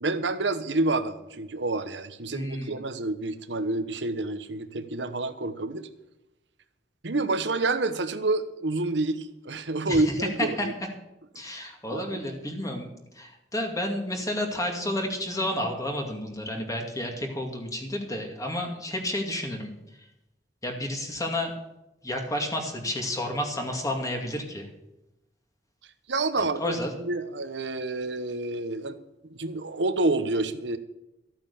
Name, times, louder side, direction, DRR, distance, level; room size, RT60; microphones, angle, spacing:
voice 1, 0.0-5.9 7.0-10.7 11.9-12.4 26.1-26.6 27.0-29.0 29.3-30.8, right 2 dB, 85° right, 10 dB, 1.1 m, -28 dB
voice 2, 2.3-2.8 9.9-10.7 11.3-19.7 20.6-21.5 22.0-24.7 26.4-26.9, left 1 dB, 20° left, 2 dB, 2.4 m, -31 dB
14.0 x 8.9 x 7.1 m, 0.91 s
head